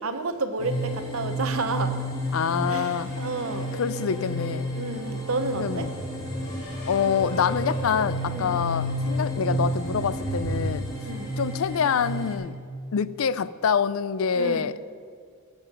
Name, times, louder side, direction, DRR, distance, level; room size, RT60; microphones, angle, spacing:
voice 1, 0.0-1.9 2.7-3.7 4.7-5.9 8.3-8.6 11.0-11.3 14.3-14.7, right 3 dB, 80° right, 8 dB, 1.0 m, -30 dB
sound 1, 0.6-12.3, equal, 20° left, 2.6 m, -31 dB
voice 2, 2.3-3.1 3.8-4.7 5.6-5.9 6.9-10.9 11.4-12.6 12.9-14.8, left 6 dB, 70° left, 16 dB, 0.4 m, -26 dB
sound 2, 2.4-10.6, left 2 dB, 35° left, 2.8 m, -42 dB
sound 3, 5.5-10.6, right 1 dB, 40° right, 1.3 m, -38 dB
13.0 x 7.2 x 6.7 m, 2.2 s
head